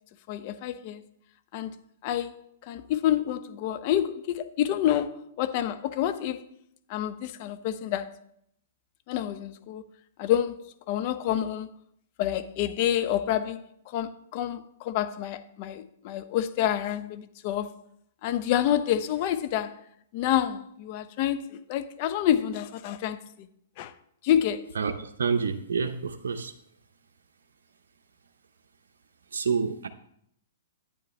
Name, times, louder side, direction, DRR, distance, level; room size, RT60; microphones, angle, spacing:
voice 1, 0.3-1.0 1.5-1.7 2.0-2.4 2.7-6.4 6.9-8.1 9.1-9.8 10.2-11.7 12.2-13.7 13.9-17.7 18.2-19.7 20.1-21.4 21.7-23.5 23.8-23.9 24.2-24.7, left 11 dB, 45° left, 0.8 m, -28 dB
voice 2, 24.7-26.5 29.3-29.9, right 5 dB, 80° right, 0.7 m, -28 dB
11.0 x 9.1 x 3.2 m
hypercardioid pair, 130°, 0 cm